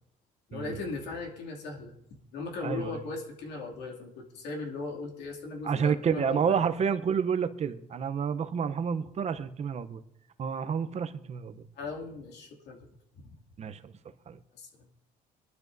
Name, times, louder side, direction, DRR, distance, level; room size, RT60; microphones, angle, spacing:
voice 1, 0.5-2.0 2.3-6.6 11.8-12.8 13.1-13.3 14.5-14.7, left 3 dB, 80° left, 2.6 m, -38 dB
voice 2, 5.6-10.0 10.4-11.6 13.6-13.9 14.3-14.4, right 7 dB, 40° right, 0.8 m, -29 dB
23.0 x 12.0 x 2.7 m
cardioid pair, 110°, 17 cm